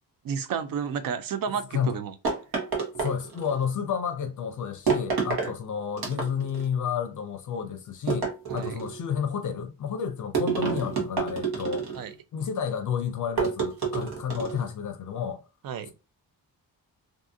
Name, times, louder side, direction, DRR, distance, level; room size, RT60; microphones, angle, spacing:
voice 1, 0.2-2.1 8.5-8.8 11.9-12.1 15.6-15.9, right 7 dB, 65° right, 0.5 m, -31 dB
sound 1, 2.2-3.6 4.9-5.5 6.0-6.6 8.1-9.0 10.3-12.1 13.4-14.7, right 5 dB, 85° right, 1.1 m, -28 dB
voice 2, 3.0-12.0 12.3-15.4 15.9-16.0, left 7 dB, 55° left, 0.5 m, -31 dB
2.6 x 2.5 x 2.5 m
wide cardioid pair, 140°, 37 cm